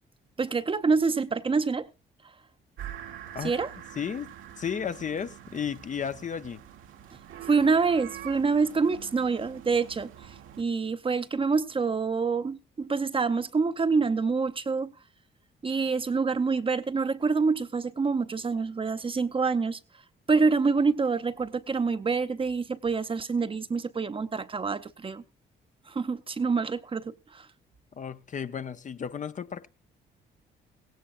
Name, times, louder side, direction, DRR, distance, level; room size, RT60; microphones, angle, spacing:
voice 1, 0.4-1.9 3.4-3.7 7.5-14.9 15.6-19.8 20.3-25.2 25.9-27.5, right 4 dB, 25° right, 0.7 m, -26 dB
sound 1, 2.8-10.6, right 11 dB, 85° right, 1.3 m, -45 dB
voice 2, 4.0-4.3 4.6-6.6 27.9-29.7, left 7 dB, 40° left, 0.6 m, -33 dB
17.0 x 16.5 x 2.5 m
cardioid pair, 90°, 20 cm